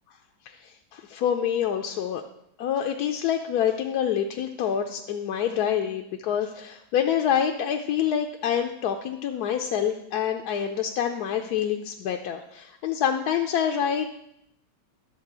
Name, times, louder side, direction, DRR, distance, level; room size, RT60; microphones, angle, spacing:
voice 1, 0.9-2.2 2.6-14.1, left 9 dB, 70° left, 3 dB, 1.0 m, -26 dB
11.5 x 4.0 x 6.7 m, 0.78 s
omnidirectional pair, 1.9 m